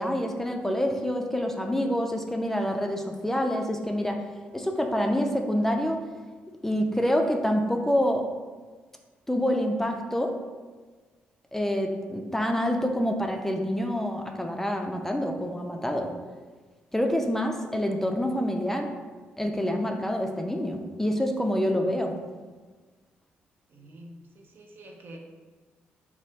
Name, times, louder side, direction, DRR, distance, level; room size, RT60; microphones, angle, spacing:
voice 1, 0.0-4.2 4.5-6.0 6.6-8.3 9.3-10.4 11.5-16.1 16.9-18.9 19.4-22.2, equal, 10° left, 3 dB, 0.3 m, -27 dB
voice 2, 23.7-25.2, right 1 dB, 55° right, 1 dB, 0.5 m, -47 dB
2.8 x 2.3 x 3.2 m, 1.4 s
supercardioid pair, 60°, 4 cm